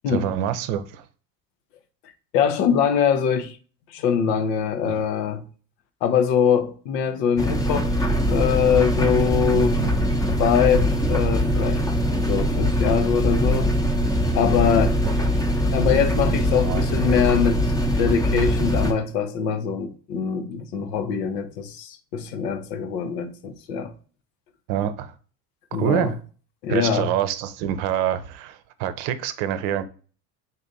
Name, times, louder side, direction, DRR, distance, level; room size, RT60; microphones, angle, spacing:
voice 1, 0.1-1.0 4.8-4.9 9.8-9.9 15.0-15.1 16.5-16.8 24.7-25.1 25.8-26.2 26.7-29.8, right 10 dB, 60° right, 0.7 m, -26 dB
voice 2, 2.3-3.6 3.9-5.4 6.0-7.9 8.3-9.8 10.4-11.8 12.3-13.7 14.3-15.0 15.7-17.6 18.0-23.9 25.7-26.1 26.6-27.1, left 7 dB, 75° left, 0.8 m, -23 dB
sound 1, 7.4-18.9, equal, 5° left, 0.7 m, -22 dB
3.9 x 2.6 x 3.8 m
hypercardioid pair, 80°, 49 cm